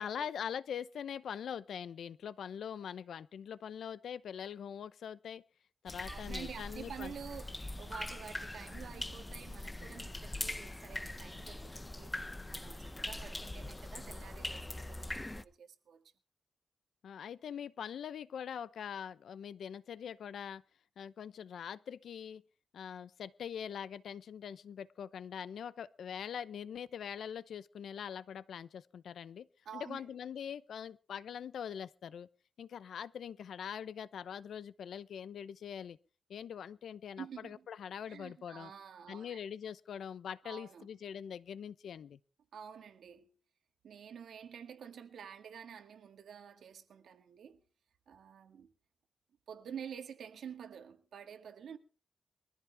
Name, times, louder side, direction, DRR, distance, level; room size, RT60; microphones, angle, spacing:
voice 1, 0.0-5.4 5.8-7.1 17.0-20.6 21.0-22.4 22.7-29.5 29.7-32.3 32.6-36.0 36.3-38.7 39.1-42.2, left 8 dB, 85° left, 0.7 m, -43 dB
sound 1, 5.9-15.4, left 1 dB, 15° left, 0.7 m, -42 dB
voice 2, 6.1-16.0 29.7-30.1 37.2-37.7 38.1-39.4 40.4-40.9 42.5-43.3 43.8-47.6 48.1-48.7 49.5-51.8, right 7 dB, 90° right, 1.8 m, -49 dB
22.5 x 14.5 x 3.5 m
wide cardioid pair, 140°, 0 cm